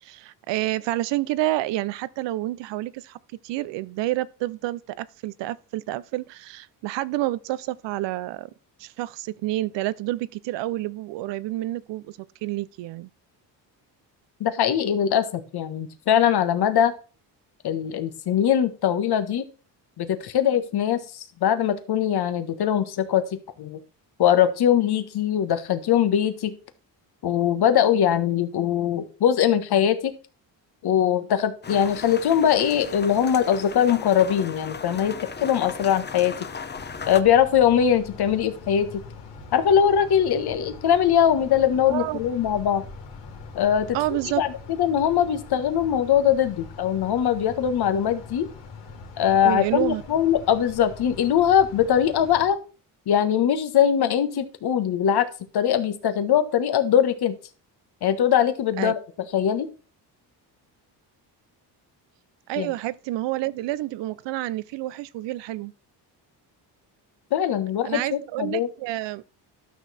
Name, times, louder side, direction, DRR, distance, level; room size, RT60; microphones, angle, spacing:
voice 1, 0.0-3.2 3.4-8.5 8.8-13.1 41.9-42.2 43.9-44.4 49.4-50.0 58.8-58.9 62.5-65.7 67.8-69.2, right 16 dB, 80° right, 0.7 m, -29 dB
voice 2, 14.4-16.9 17.6-19.4 20.0-21.0 21.4-23.8 24.2-26.5 27.2-30.1 30.8-36.3 37.1-38.9 39.5-42.8 43.5-44.0 44.4-48.5 49.2-52.6 53.1-55.2 55.5-57.4 58.0-59.0 59.3-59.7 62.6-62.7 67.3-68.7, left 9 dB, 65° left, 1.5 m, -21 dB
sound 1, 31.6-37.2, left 5 dB, 25° left, 0.9 m, -37 dB
sound 2, 36.7-52.5, left 4 dB, 80° left, 2.9 m, -42 dB
12.0 x 6.2 x 4.2 m
cardioid pair, 85°, 42 cm